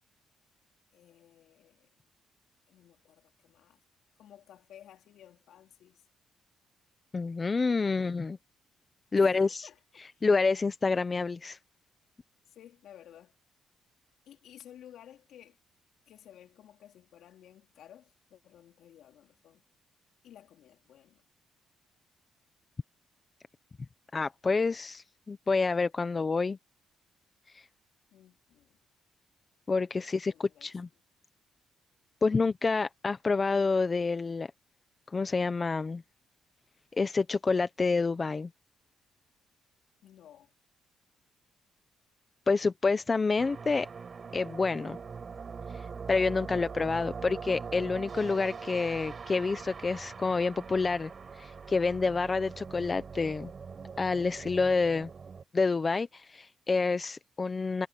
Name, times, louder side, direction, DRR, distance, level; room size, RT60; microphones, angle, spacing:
voice 1, 0.9-1.9 2.7-3.8 4.2-6.0 7.8-8.1 9.2-10.3 12.5-13.4 14.2-15.6 16.1-19.6 20.2-21.2 28.1-28.8 30.0-30.7 40.0-40.5 46.5-46.8, left 11 dB, 75° left, 4.3 m, -55 dB
voice 2, 7.1-8.4 9.1-9.5 10.2-11.6 24.1-26.6 27.5-27.6 29.7-30.3 30.6-30.9 32.2-34.5 35.1-36.0 36.9-38.5 42.5-43.9 44.3-45.0 45.7-53.5 54.0-55.1 55.5-57.9, left 4 dB, 30° left, 0.8 m, -28 dB
sound 1, 43.4-55.4, right 5 dB, 40° right, 5.1 m, -42 dB
cardioid pair, 90°, 0 cm